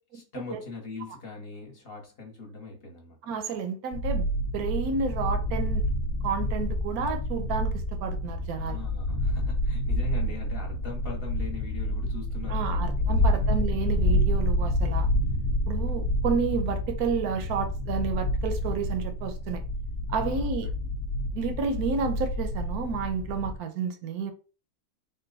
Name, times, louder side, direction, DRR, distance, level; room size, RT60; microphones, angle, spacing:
voice 1, 0.1-3.2 8.6-13.5 20.1-20.5, left 3 dB, 45° left, 1.3 m, -41 dB
voice 2, 3.3-4.2 4.5-5.9 6.2-8.8 12.5-15.1 15.7-19.6 20.1-20.7 21.3-24.3, right 5 dB, 80° right, 1.1 m, -31 dB
sound 1, 3.9-23.6, left 1 dB, 70° left, 1.1 m, -28 dB
3.8 x 2.2 x 3.9 m
omnidirectional pair, 1.6 m